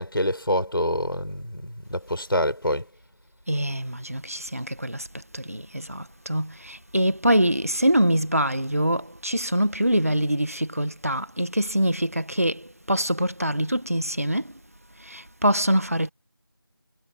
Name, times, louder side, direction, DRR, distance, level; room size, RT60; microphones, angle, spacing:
voice 1, 0.0-2.9, equal, 70° left, 4.3 m, -26 dB
voice 2, 3.5-5.1 5.3-14.5 15.0-16.1, right 1 dB, 40° right, 1.6 m, -24 dB
figure-of-eight pair, 175°, 13 cm